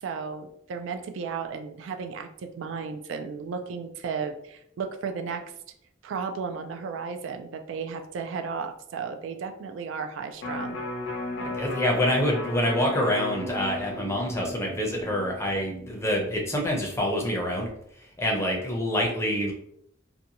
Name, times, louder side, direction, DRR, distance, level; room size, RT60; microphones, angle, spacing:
voice 1, 0.0-5.5 6.0-10.8, right 5 dB, 75° right, 6 dB, 0.3 m, -34 dB
Electric guitar, 10.4-16.6 17.0-17.1, left 2 dB, 70° left, 0.6 m, -35 dB
voice 2, 11.4-17.7 18.2-19.5, left 1 dB, 15° left, 0 dB, 0.5 m, -26 dB
2.5 x 2.2 x 2.8 m, 0.73 s
head